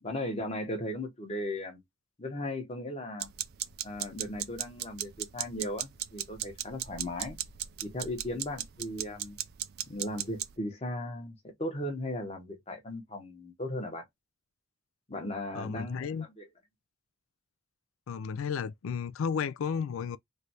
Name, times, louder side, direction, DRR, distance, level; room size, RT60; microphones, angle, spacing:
voice 1, 0.0-1.8 2.2-3.3 3.8-7.4 7.8-9.4 9.8-14.0 15.1-16.5, left 1 dB, 30° left, 0.9 m, -37 dB
sound 1, 3.2-10.5, right 12 dB, 50° right, 0.3 m, -37 dB
voice 2, 15.5-16.3 18.1-20.2, left 6 dB, 70° left, 0.3 m, -33 dB
3.3 x 2.5 x 2.8 m
head